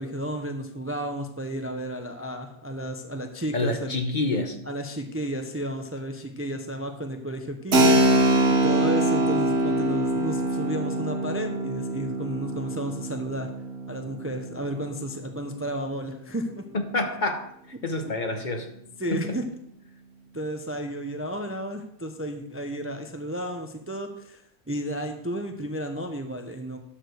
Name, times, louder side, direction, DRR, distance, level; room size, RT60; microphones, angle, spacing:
voice 1, 0.0-3.9 4.7-8.3 8.6-13.5 13.9-16.6 19.0-19.4 20.3-26.8, equal, 15° right, 5 dB, 0.6 m, -33 dB
voice 2, 3.5-4.6 16.7-17.5 17.8-18.7, left 2 dB, 40° left, 5 dB, 1.2 m, -27 dB
Keyboard (musical), 7.7-16.1, right 1 dB, 60° right, 1.6 m, -24 dB
11.5 x 4.9 x 6.4 m, 0.73 s
omnidirectional pair, 1.2 m